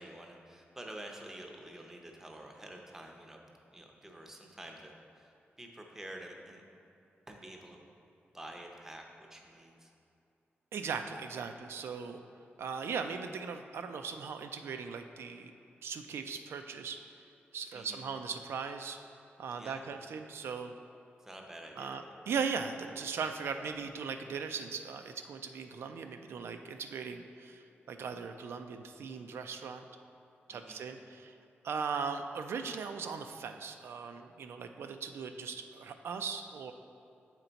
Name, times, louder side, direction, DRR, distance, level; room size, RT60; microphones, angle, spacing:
voice 1, 0.0-3.4 3.7-6.6 7.3-7.8 8.3-9.9 17.7-18.0 19.5-19.9 21.2-22.4 30.5-30.8, right 1 dB, 10° right, 2 dB, 0.6 m, -49 dB
voice 2, 10.7-12.2 12.6-15.5 15.8-17.0 17.5-19.0 19.4-20.7 21.8-29.8 30.5-31.3 31.6-36.7, right 6 dB, 85° right, 6 dB, 0.3 m, -39 dB
7.9 x 4.4 x 3.9 m, 2.7 s
wide cardioid pair, 155°, 4 cm